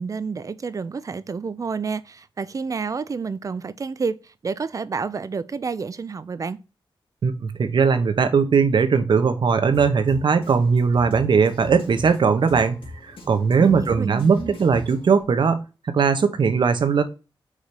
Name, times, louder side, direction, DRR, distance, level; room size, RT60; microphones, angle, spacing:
voice 1, 0.0-6.6 13.6-14.6, right 5 dB, 40° right, 0.4 m, -29 dB
voice 2, 7.2-12.8 13.3-15.6 15.9-17.0, right 5 dB, 65° right, 0.9 m, -19 dB
Drum kit, 9.7-15.2, left 1 dB, 80° left, 2.3 m, -41 dB
4.9 x 4.2 x 5.2 m
wide cardioid pair, 150°, 9 cm